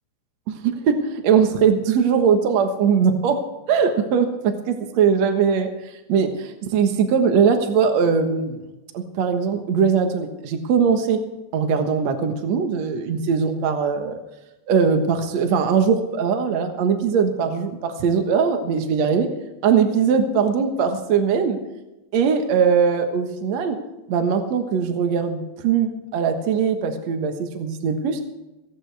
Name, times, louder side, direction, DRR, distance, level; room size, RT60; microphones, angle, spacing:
voice 1, 0.5-3.4 3.7-8.6 8.9-11.2 11.5-14.2 14.7-19.3 19.6-21.6 22.1-23.8 24.1-28.2, right 6 dB, 75° right, 6 dB, 1.5 m, -20 dB
17.0 x 16.5 x 3.4 m, 1.0 s
omnidirectional pair, 5.3 m